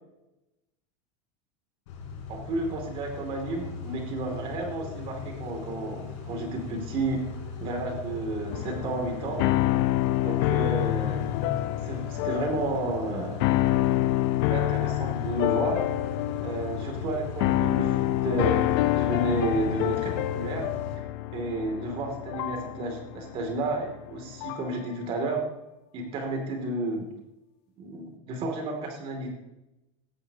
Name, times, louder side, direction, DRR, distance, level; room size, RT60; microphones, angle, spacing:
Car / Idling / Accelerating revving vroom, 1.9-21.0, left 5 dB, 70° left, 4.1 m, -39 dB
voice 1, 2.3-7.3 7.6-9.4 10.2-11.3 11.8-13.7 14.5-15.8 16.4-20.7 21.3-25.4 25.9-27.1 27.8-29.3, right 2 dB, 35° right, 2 dB, 2.7 m, -31 dB
sound 1, 8.5-24.8, left 16 dB, 50° left, 0.6 m, -27 dB
16.5 x 11.5 x 2.9 m, 0.94 s
supercardioid pair, 165°, 16 cm